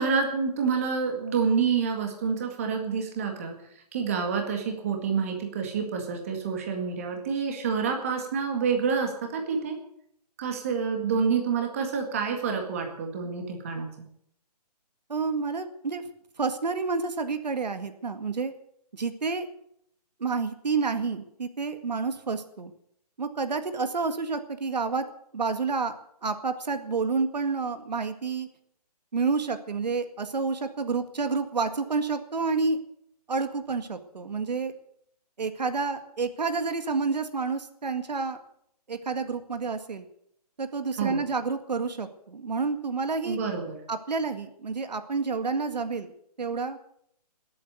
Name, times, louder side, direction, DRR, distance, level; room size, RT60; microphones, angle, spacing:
voice 1, 0.0-3.6 3.9-9.8 10.4-13.9 41.0-41.2 43.2-43.8, right 5 dB, 20° right, 3 dB, 1.9 m, -28 dB
voice 2, 15.1-16.0 16.4-18.5 18.9-19.5 20.2-22.7 23.2-25.1 25.3-25.9 26.2-28.5 29.1-32.8 33.3-34.7 35.4-38.4 38.9-40.1 40.6-43.4 43.9-46.1 46.4-46.8, right 4 dB, 80° right, 8 dB, 2.0 m, -29 dB
20.0 x 8.6 x 8.1 m, 0.72 s
hypercardioid pair, 180°, 21 cm